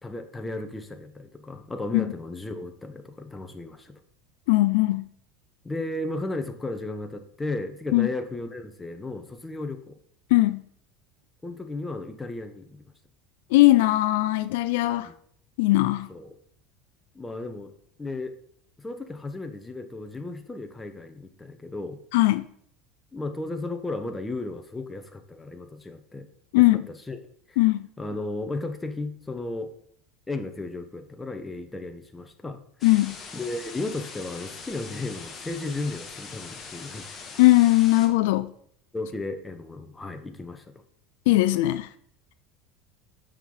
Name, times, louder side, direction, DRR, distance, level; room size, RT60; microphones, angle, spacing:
voice 1, 0.0-3.9 5.6-10.0 11.4-12.8 15.0-15.1 16.1-16.3 17.1-17.7 18.0-18.4 18.8-22.0 23.1-26.3 26.6-27.2 27.5-27.6 28.0-29.7 30.3-32.6 33.3-37.0 38.9-40.7, left 2 dB, 10° left, 1.1 m, -34 dB
voice 2, 4.5-5.1 7.9-8.1 10.3-10.6 13.5-15.1 15.6-16.1 22.1-22.4 26.5-26.8 27.6-27.8 32.8-33.2 37.4-38.5 41.3-41.9, left 18 dB, 80° left, 0.4 m, -19 dB
sound 1, 32.8-38.1, left 5 dB, 35° left, 1.7 m, -42 dB
8.1 x 5.8 x 3.9 m
supercardioid pair, 110°, 0 cm